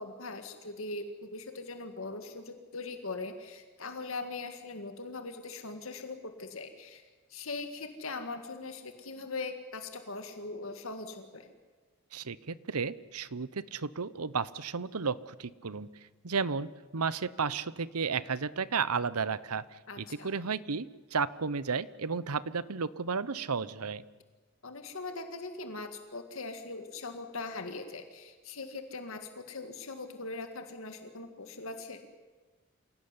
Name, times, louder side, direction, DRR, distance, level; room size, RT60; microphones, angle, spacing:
voice 1, 0.0-7.0 7.3-11.5 19.9-20.3 24.6-32.0, left 3 dB, 65° left, 6 dB, 1.9 m, -41 dB
voice 2, 12.1-15.9 16.2-20.9 21.1-24.0, right 5 dB, 90° right, 18 dB, 0.9 m, -33 dB
27.0 x 17.5 x 9.7 m, 1.4 s
head